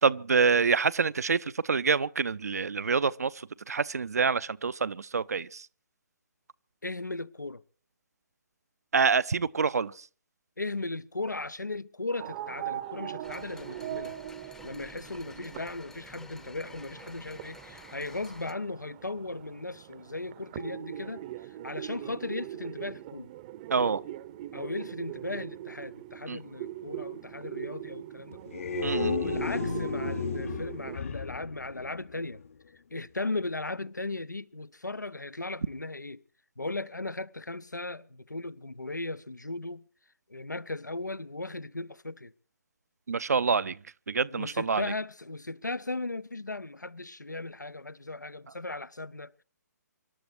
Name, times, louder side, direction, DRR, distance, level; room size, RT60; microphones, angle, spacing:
voice 1, 0.0-3.3 3.7-5.7 8.9-10.0 23.7-24.0 26.3-26.4 28.8-29.4 43.1-43.8 44.1-44.9, right 5 dB, 60° right, 0.7 m, -26 dB
voice 2, 6.8-7.6 10.6-14.2 14.6-21.2 21.6-23.3 24.5-28.6 29.1-32.4 32.9-36.2 36.6-39.8 40.3-42.3 44.3-49.4, left 2 dB, 85° left, 0.7 m, -37 dB
sound 1, 12.2-31.0, right 13 dB, 30° right, 0.8 m, -41 dB
sound 2, 13.2-18.5, left 3 dB, 5° left, 0.8 m, -51 dB
sound 3, 28.3-32.5, left 6 dB, 50° left, 1.0 m, -34 dB
25.5 x 12.0 x 4.7 m
figure-of-eight pair, 135°, 10 cm